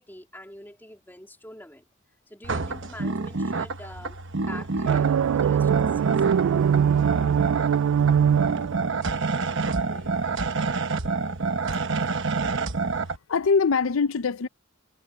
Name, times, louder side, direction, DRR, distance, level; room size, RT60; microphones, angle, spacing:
voice 1, 0.0-1.8 2.3-6.5, left 1 dB, 10° left, 3.1 m, -45 dB
sound 1, 2.4-13.2, right 4 dB, 60° right, 1.1 m, -28 dB
sound 2, 4.9-9.2, right 8 dB, 75° right, 0.3 m, -22 dB
Harp, 6.0-11.4, left 2 dB, 40° left, 7.5 m, -55 dB
voice 2, 13.0-14.5, left 5 dB, 75° left, 0.6 m, -23 dB
head